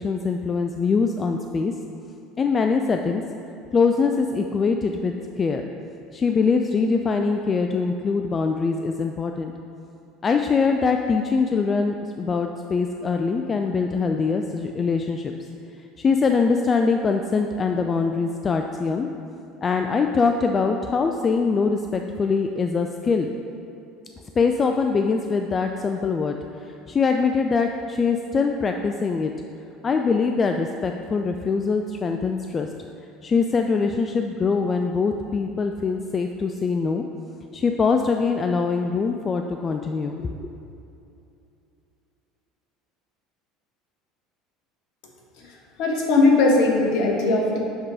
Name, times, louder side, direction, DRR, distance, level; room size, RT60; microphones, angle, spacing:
voice 1, 0.0-1.7 2.4-3.2 3.7-5.6 6.1-9.5 10.2-15.3 16.0-19.1 19.6-23.3 24.4-26.4 26.9-29.3 29.8-32.7 33.2-37.0 37.5-40.5, left 4 dB, 30° left, 4 dB, 0.4 m, -23 dB
voice 2, 45.8-47.6, left 3 dB, 65° left, -1 dB, 1.3 m, -19 dB
7.8 x 3.8 x 5.0 m, 2.7 s
hypercardioid pair, 75°, 0 cm